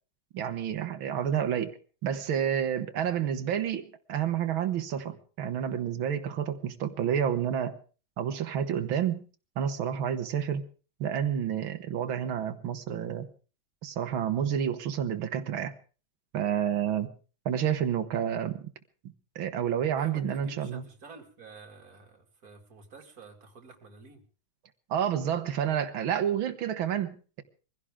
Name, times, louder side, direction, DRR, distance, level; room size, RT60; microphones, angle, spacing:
voice 1, 0.3-1.7 2.0-7.8 8.2-9.2 9.6-10.6 11.0-13.3 13.8-15.7 16.3-17.1 17.5-18.7 19.4-20.9 24.9-27.4, right 9 dB, 75° right, 2.0 m, -29 dB
voice 2, 20.0-24.2, right 4 dB, 45° right, 2.7 m, -50 dB
23.0 x 16.0 x 3.6 m
omnidirectional pair, 2.3 m